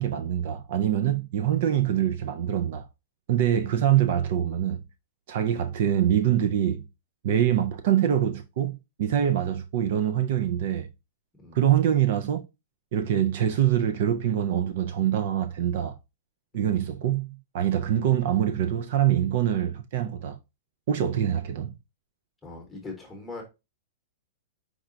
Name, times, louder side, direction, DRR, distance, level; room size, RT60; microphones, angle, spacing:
voice 1, 0.0-2.9 3.3-4.9 5.3-6.9 7.2-10.9 11.5-12.5 12.9-16.0 16.5-20.4 20.9-21.7, right 10 dB, 50° right, 0.3 m, -24 dB
voice 2, 16.6-17.0 17.8-17.9 20.9-21.2 22.4-23.4, left 3 dB, 5° left, 0.9 m, -43 dB
4.8 x 2.2 x 3.7 m
supercardioid pair, 165°, 0 cm